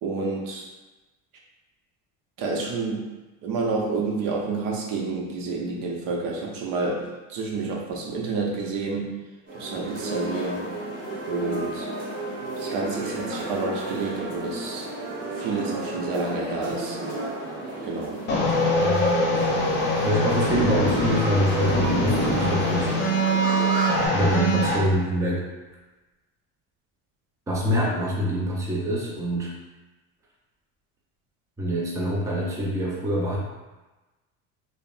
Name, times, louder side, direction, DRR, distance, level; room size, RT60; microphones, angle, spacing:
voice 1, 0.0-0.7 2.4-3.1 3.4-9.1 9.5-10.6 11.3-11.9 12.6-14.9 15.4-17.0 17.8-18.2, right 3 dB, 60° right, -1 dB, 0.8 m, -29 dB
sound 1, 9.5-24.1, right 2 dB, 30° right, 1.5 m, -32 dB
sound 2, 18.3-24.8, left 1 dB, 30° left, 0.7 m, -23 dB
voice 2, 20.0-23.3 24.1-25.4 27.5-29.5 31.6-33.4, equal, 10° right, -4 dB, 0.5 m, -25 dB
4.9 x 2.0 x 2.5 m, 1.2 s
supercardioid pair, 115°, 36 cm